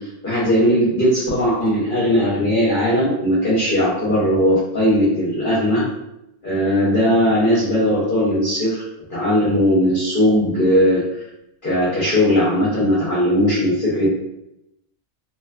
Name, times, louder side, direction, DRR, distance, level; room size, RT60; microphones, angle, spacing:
voice 1, 0.0-5.8 6.4-8.8 9.1-11.0 11.6-14.2, equal, 50° left, -8 dB, 0.7 m, -18 dB
2.6 x 2.2 x 2.3 m, 0.85 s
omnidirectional pair, 1.4 m